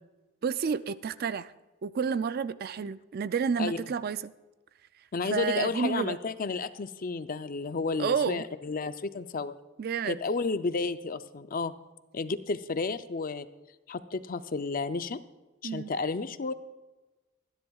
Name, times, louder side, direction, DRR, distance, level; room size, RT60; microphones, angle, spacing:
voice 1, 0.4-1.5 1.8-4.3 5.3-6.2 8.0-8.4 9.8-10.2 15.6-15.9, right 6 dB, 45° right, 0.3 m, -30 dB
voice 2, 5.1-9.5 10.1-11.7 12.1-13.5 13.9-15.2 15.6-16.5, left 4 dB, 40° left, 0.5 m, -32 dB
25.0 x 10.5 x 2.4 m
head